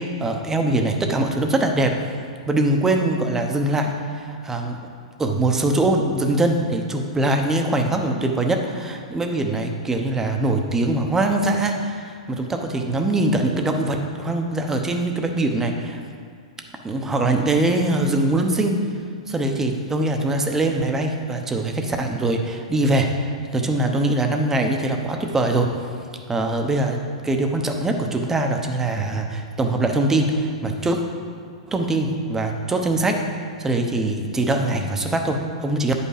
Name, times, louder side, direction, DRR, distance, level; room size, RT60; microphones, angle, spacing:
voice 1, 0.0-2.0 2.5-4.9 5.2-16.0 16.8-18.8 19.3-25.7 26.3-31.0 31.7-33.2 33.6-35.9, right 2 dB, 10° right, 3 dB, 0.8 m, -22 dB
8.6 x 5.5 x 5.0 m, 2.2 s
hypercardioid pair, 135°, 4 cm